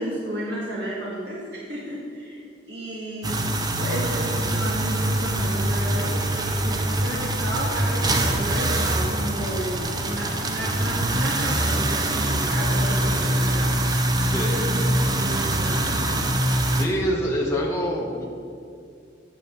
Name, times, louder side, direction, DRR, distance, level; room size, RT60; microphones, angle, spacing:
voice 1, 0.0-3.4 3.7-9.7 10.1-13.7 14.5-16.1, right 1 dB, 65° right, -5 dB, 1.7 m, -32 dB
sound 1, 3.2-16.9, right 1 dB, 20° right, 0.8 m, -24 dB
voice 2, 14.2-14.6 16.7-18.3, equal, 15° left, -3 dB, 1.1 m, -26 dB
9.2 x 6.7 x 6.9 m, 2.4 s
head